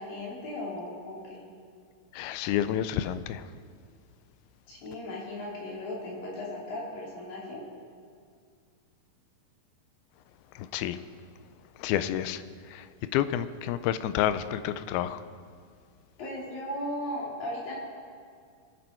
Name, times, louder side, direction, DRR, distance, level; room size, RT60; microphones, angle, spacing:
voice 1, 0.0-1.5 4.7-7.6 16.2-17.8, left 1 dB, 65° left, -4 dB, 4.8 m, -37 dB
voice 2, 2.1-3.4 10.7-11.0 11.8-12.4 12.7-12.8 13.1-15.2, left 11 dB, 90° left, 13 dB, 2.6 m, -29 dB
23.5 x 9.6 x 4.5 m, 2.1 s
omnidirectional pair, 4.3 m